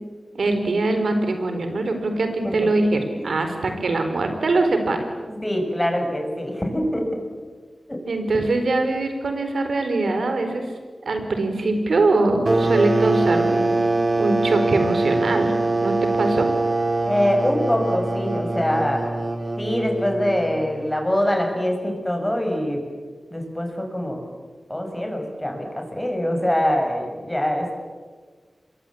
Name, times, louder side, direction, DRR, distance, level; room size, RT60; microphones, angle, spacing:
voice 1, 0.3-5.0 8.1-10.6 11.1-13.8 14.2-15.5 15.8-16.5, right 2 dB, 85° right, 6 dB, 4.3 m, -22 dB
voice 2, 5.3-7.2 7.9-8.0 17.0-19.1 19.6-22.8 23.3-24.2 24.7-27.7, equal, 15° left, 3 dB, 6.6 m, -24 dB
sound 1, 12.5-20.8, right 2 dB, 40° right, 3.0 m, -23 dB
27.0 x 22.0 x 8.7 m, 1.5 s
wide cardioid pair, 55°, 0 cm